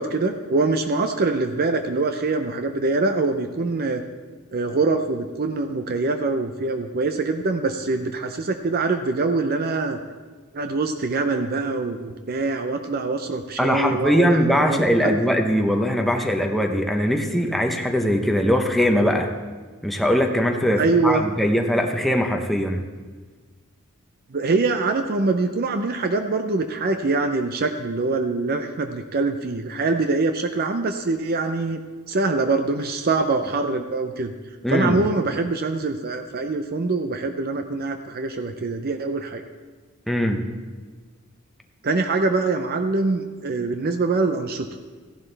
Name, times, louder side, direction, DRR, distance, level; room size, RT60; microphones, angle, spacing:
voice 1, 0.0-4.0 4.5-10.0 10.5-15.2 20.8-21.2 24.3-31.8 32.1-34.3 34.7-39.4 41.8-44.7, right 3 dB, 45° right, 6 dB, 0.6 m, -24 dB
voice 2, 13.6-19.3 19.8-22.8 34.6-35.0 40.1-40.4, equal, ahead, 3 dB, 0.8 m, -21 dB
15.0 x 11.0 x 3.3 m, 1.4 s
head